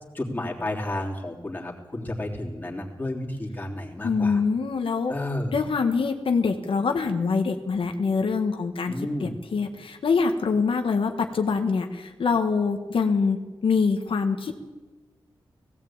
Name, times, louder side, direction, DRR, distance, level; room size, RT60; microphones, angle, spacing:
voice 1, 0.1-4.4 5.1-5.5 8.9-9.4, left 1 dB, 20° left, -1 dB, 3.2 m, -31 dB
voice 2, 4.0-5.1 5.5-14.6, left 5 dB, 80° left, 5 dB, 1.5 m, -25 dB
18.0 x 17.0 x 8.8 m, 1.2 s
wide cardioid pair, 150°, 9 cm